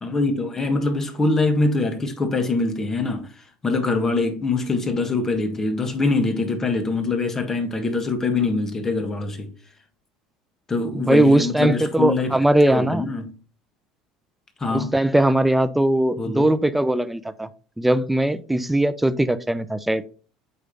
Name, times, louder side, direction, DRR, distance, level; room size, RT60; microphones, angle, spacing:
voice 1, 0.0-9.5 10.7-12.4 12.7-13.3 14.6-14.9 16.2-16.5, left 3 dB, 20° left, 1.6 m, -24 dB
voice 2, 10.9-13.1 14.7-17.5 17.8-20.0, right 1 dB, 5° right, 0.6 m, -20 dB
8.3 x 3.3 x 4.0 m
supercardioid pair, 100°, 2 cm